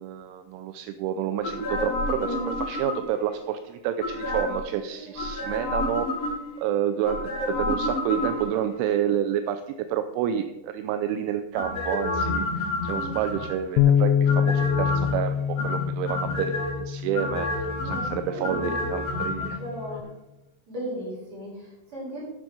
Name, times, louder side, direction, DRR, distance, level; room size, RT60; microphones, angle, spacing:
voice 1, 0.0-7.2 7.5-9.6 9.9-15.4 15.6-16.5 16.8-19.6, right 9 dB, 85° right, 9 dB, 2.9 m, -29 dB
sound 1, 1.4-3.2 4.0-4.7 5.1-6.6 7.0-8.7 11.5-13.7 14.3-15.2 15.6-16.7 17.1-19.5 19.8-19.9, left 2 dB, 35° left, 4.4 m, -29 dB
voice 2, 2.2-2.5 4.8-5.1 12.9-13.2 17.7-20.0 20.7-22.3, equal, 30° right, -5 dB, 5.1 m, -36 dB
Bass guitar, 13.8-20.0, left 8 dB, 80° left, 2.6 m, -26 dB
13.5 x 6.1 x 5.2 m, 0.96 s
omnidirectional pair, 5.5 m